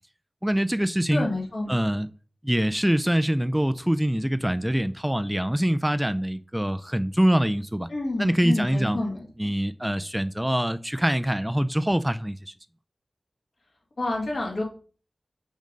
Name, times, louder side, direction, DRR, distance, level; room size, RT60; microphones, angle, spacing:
voice 1, 0.4-1.3 1.7-2.1 2.4-7.9 8.2-9.0 9.4-12.5, equal, 10° right, 0.4 m, -24 dB
voice 2, 1.1-1.8 7.9-9.3 14.0-14.6, left 2 dB, 70° left, 2.1 m, -28 dB
5.2 x 3.8 x 5.2 m
cardioid pair, 40°, 0 cm